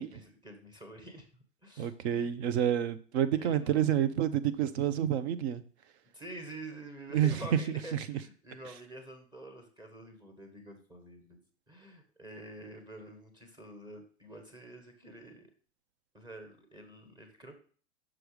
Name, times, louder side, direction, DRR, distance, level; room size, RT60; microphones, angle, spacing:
voice 1, 0.0-2.5 3.4-3.8 6.1-11.4 11.7-15.5 16.1-17.5, right 1 dB, 10° right, 3 dB, 1.5 m, -48 dB
voice 2, 1.8-5.6 7.1-7.3, right 10 dB, 60° right, 13 dB, 0.8 m, -28 dB
6.1 x 4.6 x 5.0 m, 0.43 s
hypercardioid pair, 115°, 37 cm